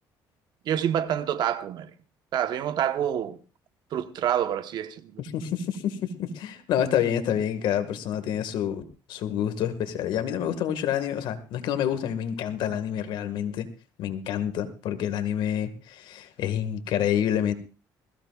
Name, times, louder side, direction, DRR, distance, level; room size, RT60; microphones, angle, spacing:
voice 1, 0.6-1.9 2.3-3.4 3.9-5.2, right 10 dB, 65° right, 1.1 m, -27 dB
voice 2, 5.2-8.8 9.1-13.7 14.0-17.5, left 9 dB, 75° left, 1.8 m, -28 dB
21.0 x 15.5 x 2.4 m
cardioid pair, 105°, 8 cm